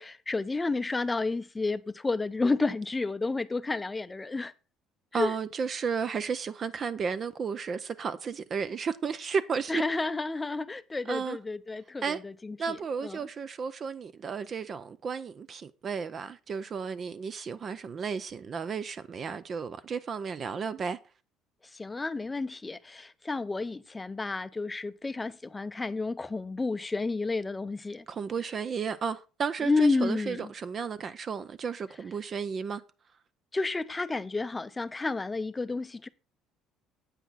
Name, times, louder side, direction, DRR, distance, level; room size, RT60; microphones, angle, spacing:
voice 1, 0.0-4.5 5.1-5.3 9.7-13.2 21.7-28.0 29.6-30.5 33.5-36.1, left 3 dB, 15° left, 0.6 m, -31 dB
voice 2, 5.1-9.8 11.1-11.4 12.0-12.2 12.6-21.0 28.1-32.8, right 6 dB, 35° right, 0.5 m, -33 dB
8.2 x 8.2 x 4.1 m
cardioid pair, 120°, 0 cm